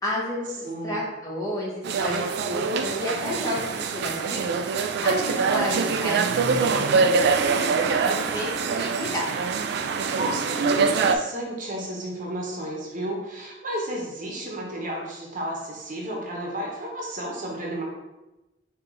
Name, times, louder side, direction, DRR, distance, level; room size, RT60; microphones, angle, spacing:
voice 1, 0.0-9.3, left 1 dB, 20° left, -5 dB, 1.2 m, -31 dB
voice 2, 0.6-1.0 10.1-17.8, right 1 dB, 45° right, -1 dB, 0.9 m, -32 dB
sound 1, 1.8-11.2, right 5 dB, 60° right, 0.3 m, -24 dB
4.7 x 2.8 x 3.9 m, 1.0 s
head